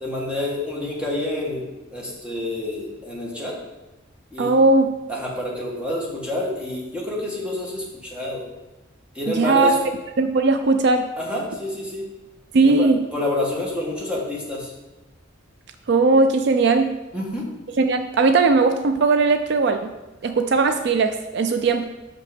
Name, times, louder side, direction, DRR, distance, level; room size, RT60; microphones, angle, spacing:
voice 1, 0.0-1.6 1.9-3.5 4.3-4.5 5.1-8.5 9.1-9.7 11.2-12.1 12.6-14.7 17.1-17.5, left 1 dB, 5° right, -3 dB, 1.6 m, -28 dB
voice 2, 4.4-4.9 9.3-9.8 10.2-11.1 12.5-13.0 15.9-16.9 17.8-19.9 20.2-21.8, right 3 dB, 60° right, 7 dB, 0.4 m, -18 dB
6.2 x 5.6 x 5.1 m, 1.1 s
head